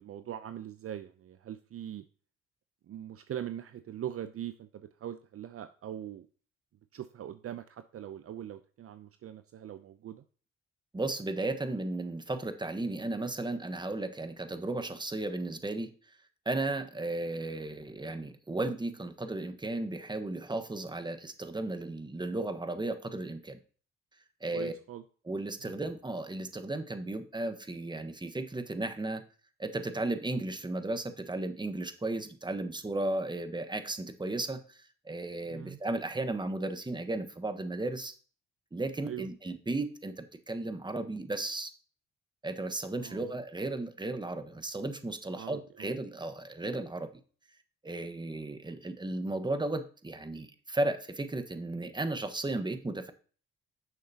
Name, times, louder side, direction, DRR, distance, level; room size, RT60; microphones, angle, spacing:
voice 1, 0.0-2.0 2.9-6.3 6.9-10.2 24.5-25.0 35.5-35.8 39.0-39.3 43.0-43.3 45.3-45.9, right 10 dB, 50° right, 11 dB, 0.6 m, -41 dB
voice 2, 10.9-16.1 16.4-23.6 24.4-24.7 25.2-29.2 29.6-38.1 38.7-41.7 42.4-47.1 47.8-53.1, right 2 dB, 15° right, 9 dB, 1.3 m, -35 dB
10.5 x 6.5 x 2.9 m, 0.40 s
hypercardioid pair, 55°, 30 cm